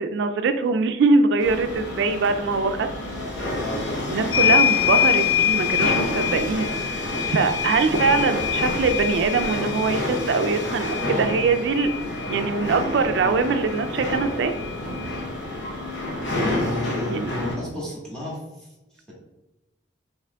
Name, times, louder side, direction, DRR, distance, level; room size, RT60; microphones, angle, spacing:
voice 1, 0.0-2.9 4.1-14.5 17.1-17.3, right 4 dB, 65° right, 8 dB, 0.3 m, -23 dB
sound 1, 1.4-17.5, left 1 dB, 60° left, 0.8 m, -29 dB
sound 2, 4.3-12.4 13.7-13.8 14.1-15.2, left 10 dB, 25° left, 0.3 m, -25 dB
voice 2, 16.4-18.7 18.9-19.1, left 1 dB, 5° left, -6 dB, 1.2 m, -32 dB
5.8 x 2.9 x 2.2 m, 1.0 s
head